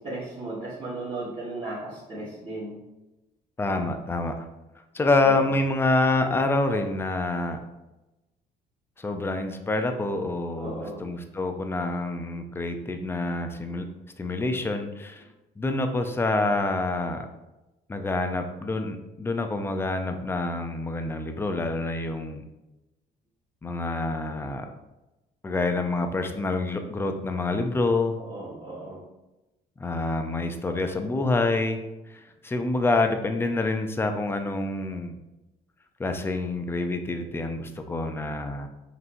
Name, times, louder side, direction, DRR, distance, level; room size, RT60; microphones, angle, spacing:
voice 1, 0.0-2.8 5.2-5.3 10.6-11.0 28.3-29.0, right 2 dB, 30° right, -10 dB, 1.4 m, -35 dB
voice 2, 3.6-4.5 4.9-7.6 9.0-13.9 14.2-15.2 15.6-17.3 17.9-22.4 23.6-24.7 25.4-28.2 29.8-31.8 32.1-35.2 36.0-38.7, left 2 dB, 15° left, 6 dB, 0.4 m, -27 dB
5.5 x 3.0 x 2.6 m, 1.0 s
cardioid pair, 110°, 17 cm